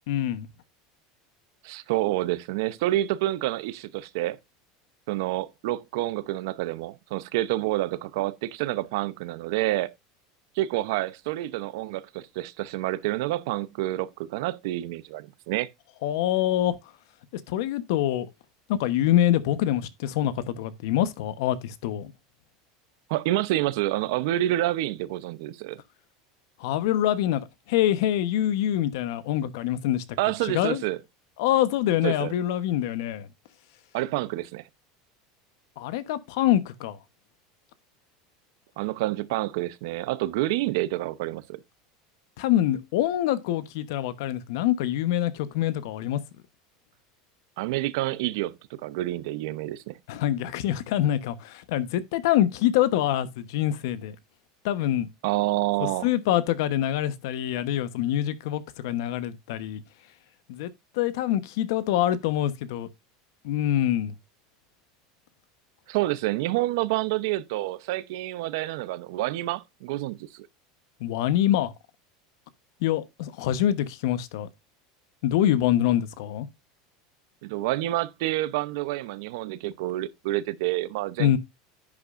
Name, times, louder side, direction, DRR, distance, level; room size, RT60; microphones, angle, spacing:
voice 1, 0.1-0.5 16.0-16.8 17.5-18.3 18.7-22.1 26.6-27.4 27.7-30.0 30.4-30.8 31.4-33.3 35.8-37.0 42.4-46.2 50.1-54.1 54.6-55.1 56.0-59.8 60.5-60.7 61.0-62.9 63.4-64.1 71.0-71.7 72.8-74.5 75.2-76.5 81.2-81.4, left 12 dB, 70° left, 1.0 m, -25 dB
voice 2, 1.6-4.4 5.1-9.9 10.6-15.7 23.1-25.8 30.2-31.0 32.0-32.3 33.9-34.6 38.8-41.6 47.6-50.0 55.2-56.1 65.9-70.5 77.4-81.4, right 16 dB, 65° right, 0.8 m, -28 dB
10.5 x 8.5 x 2.5 m
supercardioid pair, 165°, 2 cm